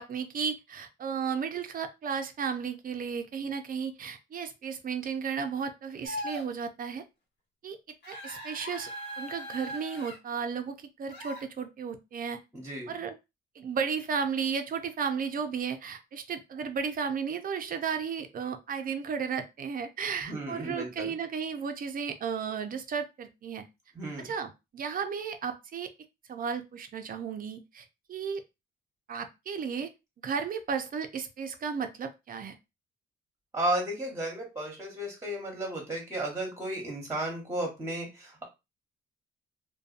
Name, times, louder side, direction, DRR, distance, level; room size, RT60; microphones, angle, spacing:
voice 1, 0.0-7.0 7.6-7.8 8.1-8.9 9.2-12.4 12.9-13.1 13.6-23.6 24.2-25.9 26.3-28.4 29.1-29.9 30.2-32.6, right 6 dB, 45° right, 7 dB, 0.5 m, -34 dB
sound 1, 6.1-6.5 8.0-10.2 11.1-11.4, equal, 60° left, 1.2 m, -39 dB
voice 2, 12.5-12.9 20.2-21.1 23.9-24.3 33.5-38.4, right 1 dB, 15° right, 1 dB, 1.0 m, -34 dB
2.6 x 2.2 x 2.4 m, 0.24 s
cardioid pair, 90°, 20 cm